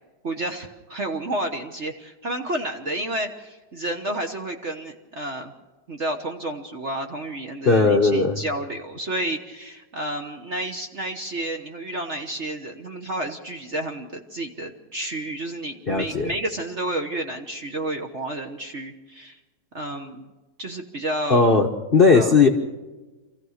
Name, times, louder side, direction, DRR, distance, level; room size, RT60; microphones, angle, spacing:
voice 1, 0.2-5.5 5.9-19.4 19.7-20.3 20.6-21.5 22.1-22.3, right 1 dB, 40° right, 4 dB, 1.2 m, -31 dB
voice 2, 7.7-8.4 15.9-16.3 21.3-22.5, left 4 dB, 40° left, 4 dB, 0.9 m, -17 dB
27.0 x 15.0 x 6.5 m, 1.2 s
omnidirectional pair, 2.3 m